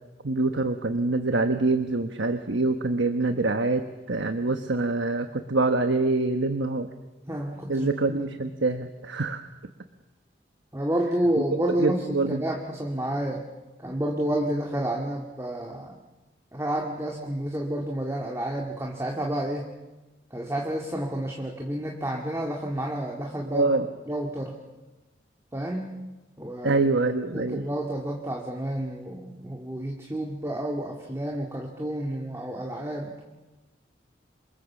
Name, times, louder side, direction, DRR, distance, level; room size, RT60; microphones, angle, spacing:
voice 1, 0.2-6.9 7.7-9.4 11.8-12.4 23.5-23.9 26.6-27.7, right 3 dB, 85° right, 7 dB, 1.2 m, -25 dB
voice 2, 7.2-8.2 10.7-13.4 13.8-16.0 16.5-19.7 20.3-23.7 24.1-24.6 25.5-25.9 26.4-26.8 27.3-33.2, right 1 dB, 15° right, 0 dB, 2.0 m, -30 dB
27.5 x 24.0 x 7.3 m, 1.1 s
head